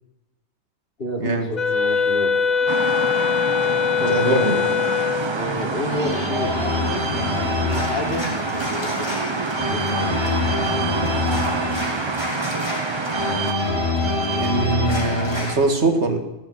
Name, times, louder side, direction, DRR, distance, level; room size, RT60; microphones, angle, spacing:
voice 1, 1.0-2.7 4.0-4.7 5.3-9.2 9.7-10.3, left 1 dB, 60° left, 0 dB, 3.3 m, -30 dB
Wind instrument woodwind instrument, 1.5-5.4, left 7 dB, 40° left, 1.0 m, -21 dB
Organ, 2.4-15.6, left 2 dB, 25° left, 3.3 m, -26 dB
sound 1, 2.7-13.5, right 5 dB, 35° right, 0.5 m, -28 dB
voice 2, 4.1-4.6 14.4-16.2, right 3 dB, 85° right, 5 dB, 2.2 m, -22 dB
16.0 x 7.7 x 9.8 m, 1.0 s
omnidirectional pair, 1.1 m